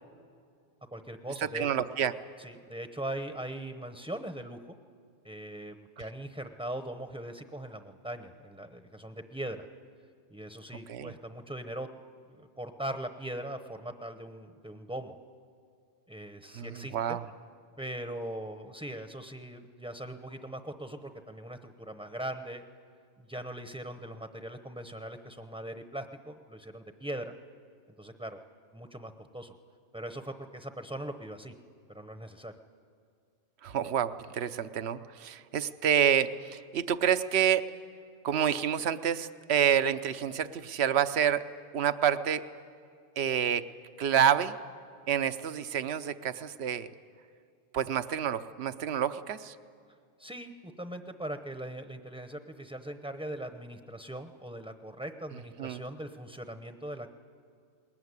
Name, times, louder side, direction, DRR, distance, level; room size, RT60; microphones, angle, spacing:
voice 1, 0.9-1.7 2.4-4.8 5.2-9.7 10.3-11.9 12.3-15.2 16.1-17.2 17.8-22.6 23.2-27.3 28.0-28.4 28.7-29.6 29.9-31.5 31.9-32.5 50.2-57.1, right 1 dB, 5° right, 7 dB, 0.8 m, -40 dB
voice 2, 1.5-2.1 10.9-11.1 16.5-17.2 33.6-37.6 38.2-41.4 41.7-42.4 43.2-43.6 44.0-44.6 45.1-46.9 47.7-49.5 55.6-55.8, right 9 dB, 70° right, 11 dB, 1.0 m, -28 dB
21.0 x 20.0 x 9.7 m, 2.3 s
omnidirectional pair, 1.2 m